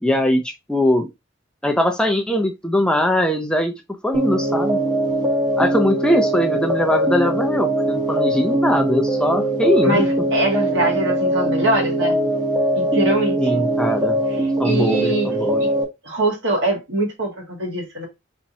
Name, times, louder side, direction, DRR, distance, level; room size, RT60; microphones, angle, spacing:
voice 1, 0.0-1.1 1.6-4.8 5.6-10.0 13.4-14.2 14.6-15.6, left 1 dB, 5° left, 0.5 m, -21 dB
sound 1, 4.1-15.8, right 1 dB, 20° right, 1.0 m, -21 dB
voice 2, 9.8-12.2 12.8-13.6 14.6-15.3 15.6-15.7 16.0-18.1, right 1 dB, 70° right, 2.1 m, -22 dB
4.3 x 4.1 x 2.7 m
head